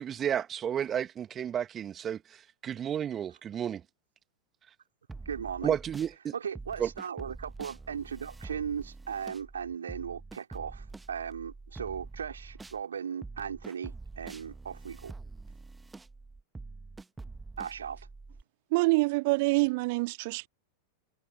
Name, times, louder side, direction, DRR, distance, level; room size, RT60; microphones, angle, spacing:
voice 1, 0.0-3.8 5.6-6.3 6.8-6.9, right 9 dB, 25° right, 1.8 m, -32 dB
sound 1, 5.1-6.1 6.6-12.8 13.2-18.4, right 3 dB, 10° right, 1.4 m, -46 dB
voice 2, 5.3-5.8 6.3-15.1 17.6-18.0, right 7 dB, 70° right, 3.8 m, -37 dB
voice 3, 18.7-20.5, right 26 dB, 50° right, 2.0 m, -26 dB
figure-of-eight pair, 90°, 0 cm